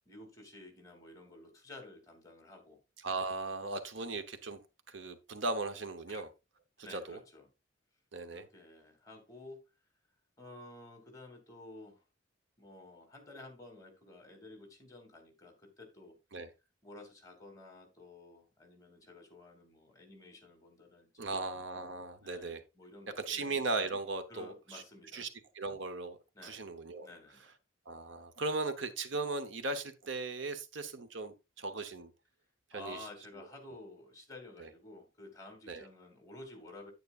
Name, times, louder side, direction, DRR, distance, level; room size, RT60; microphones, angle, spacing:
voice 1, 0.0-2.8 6.1-6.3 6.8-7.5 8.3-9.6 10.4-12.0 12.6-16.2 16.8-21.5 22.2-23.5 24.3-25.3 26.3-26.7 27.0-27.5 32.7-36.9, left 2 dB, 15° left, 2.7 m, -52 dB
voice 2, 3.0-4.6 4.9-6.3 6.9-7.2 8.1-8.4 16.3-16.5 21.2-22.6 23.2-24.8 25.1-25.3 25.5-27.1 27.9-32.1 32.7-33.0 34.6-34.7 35.7-35.9, right 3 dB, 65° right, 1.0 m, -37 dB
9.5 x 9.5 x 2.5 m
head